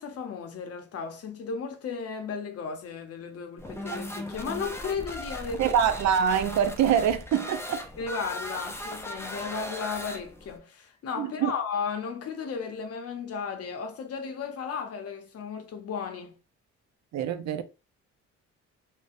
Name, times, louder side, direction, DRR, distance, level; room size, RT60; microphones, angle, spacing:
voice 1, 0.0-5.7 8.0-16.4, left 5 dB, 50° left, 0.7 m, -35 dB
sound 1, 3.6-10.6, left 1 dB, 10° left, 0.4 m, -38 dB
voice 2, 5.6-7.8 11.2-11.5 17.1-17.6, right 8 dB, 65° right, 0.4 m, -25 dB
2.6 x 2.1 x 2.4 m
cardioid pair, 90°, 30 cm